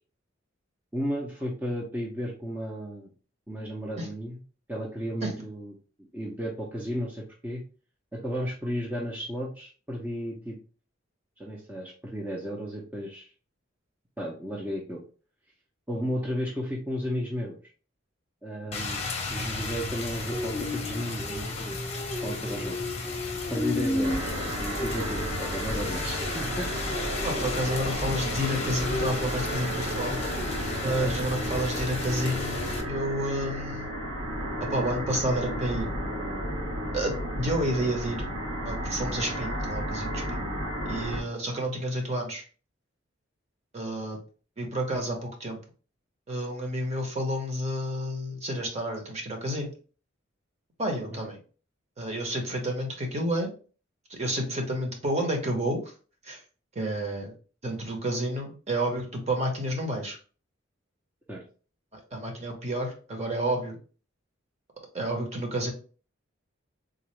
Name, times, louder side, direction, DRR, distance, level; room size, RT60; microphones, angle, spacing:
voice 1, 0.9-3.1 3.5-4.4 4.7-5.7 6.0-7.6 8.1-10.6 11.4-13.3 14.2-15.0 15.9-17.6 18.4-19.0 19.3-21.7 22.2-22.8 23.5-24.2 24.6-26.9 30.8-31.2 51.1-51.2 61.3-61.4, equal, 10° right, -3 dB, 0.6 m, -33 dB
Rain, 18.7-32.8, left 3 dB, 35° left, 0.7 m, -33 dB
sound 1, 24.0-41.2, equal, 90° right, 1.8 m, -33 dB
voice 2, 27.2-30.2 30.8-33.9 34.7-35.9 36.9-38.3 38.6-40.5 40.9-42.4 43.7-44.2 44.6-45.6 46.3-49.7 50.8-51.4 52.0-53.5 54.1-55.8 56.2-56.4 56.7-57.3 57.6-60.2 61.9-63.8 64.9-65.7, right 1 dB, 35° right, 2 dB, 0.9 m, -30 dB
3.8 x 2.5 x 3.1 m, 0.38 s
head